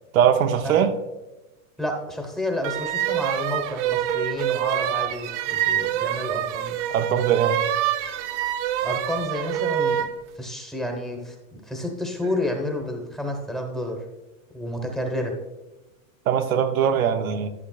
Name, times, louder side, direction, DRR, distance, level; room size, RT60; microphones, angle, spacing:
voice 1, 0.1-1.0 6.9-7.6 16.3-17.5, right 8 dB, 90° right, 0.8 m, -21 dB
voice 2, 1.8-6.8 8.8-10.0 10.4-14.0 14.5-15.3, left 1 dB, ahead, 0.9 m, -30 dB
sound 1, 2.6-10.2, right 11 dB, 60° right, 0.6 m, -26 dB
12.0 x 6.5 x 2.3 m
supercardioid pair, 140°, 41 cm